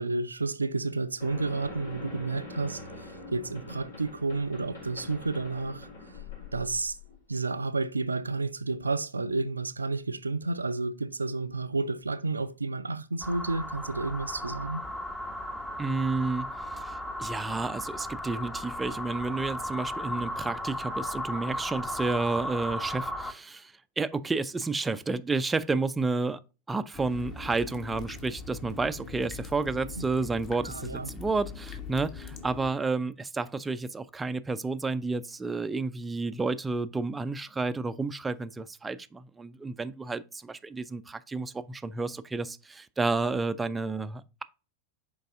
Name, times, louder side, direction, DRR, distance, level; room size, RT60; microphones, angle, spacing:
voice 1, 0.0-5.9 6.5-7.0 7.3-14.8 30.0-30.1 30.6-31.1, right 3 dB, 80° right, 0.4 m, -31 dB
sound 1, 1.2-7.2, left 3 dB, 70° left, 3.2 m, -44 dB
sound 2, 13.2-23.3, left 1 dB, 10° left, 0.8 m, -35 dB
voice 2, 15.8-26.4 26.7-44.4, right 3 dB, 10° right, 0.4 m, -31 dB
sound 3, 26.9-32.7, left 5 dB, 30° left, 1.2 m, -42 dB
6.5 x 4.7 x 3.5 m
figure-of-eight pair, 90°, 0 cm